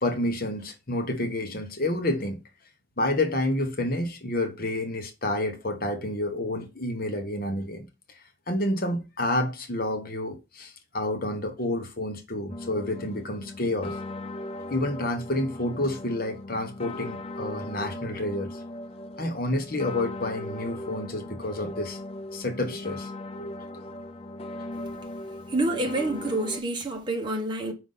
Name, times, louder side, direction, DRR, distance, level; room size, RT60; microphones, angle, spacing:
voice 1, 0.0-2.4 3.0-7.9 8.5-14.0 14.7-18.6 19.2-22.0 22.3-23.8 24.8-25.1 25.9-26.1, left 1 dB, 45° left, 1.2 m, -29 dB
sound 1, 12.5-26.6, left 2 dB, 30° left, 0.4 m, -39 dB
voice 2, 25.5-27.7, right 2 dB, 20° right, 1.2 m, -27 dB
5.3 x 4.6 x 4.0 m
head